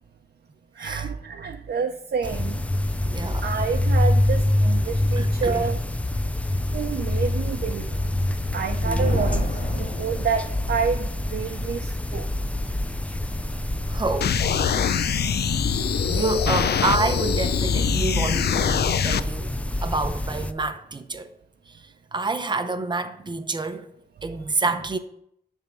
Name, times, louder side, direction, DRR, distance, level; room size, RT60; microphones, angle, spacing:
voice 1, 0.8-2.6 3.4-5.8 6.7-8.0 8.5-12.3, right 6 dB, 85° right, 0.7 m, -28 dB
sound 1, 2.2-20.5, left 1 dB, 10° left, 0.4 m, -26 dB
voice 2, 3.0-3.5 4.8-5.7 8.8-9.2 13.9-14.4 16.1-19.5 19.8-21.3 21.7-21.8 22.1-23.9 24.2-25.0, right 3 dB, 25° right, 0.7 m, -28 dB
Thunder, 9.0-11.2, left 1 dB, 45° left, 3.0 m, -32 dB
sound 2, 14.2-19.2, left 8 dB, 75° left, 0.4 m, -24 dB
10.5 x 3.6 x 6.7 m
wide cardioid pair, 150°, 17 cm